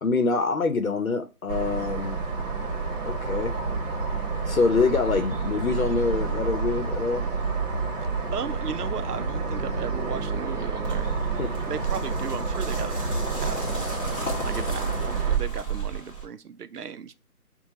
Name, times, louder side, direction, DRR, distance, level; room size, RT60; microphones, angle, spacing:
voice 1, 0.0-2.2 3.1-3.5 4.5-7.3 11.4-11.5, left 4 dB, 65° left, 0.8 m, -25 dB
sound 1, 1.5-15.4, right 4 dB, 55° right, 1.1 m, -29 dB
voice 2, 8.3-11.1 11.7-13.9 14.4-17.1, right 7 dB, 85° right, 0.6 m, -36 dB
sound 2, 10.8-16.2, right 5 dB, 5° right, 0.9 m, -33 dB
5.7 x 2.2 x 4.0 m
figure-of-eight pair, 150°, 45 cm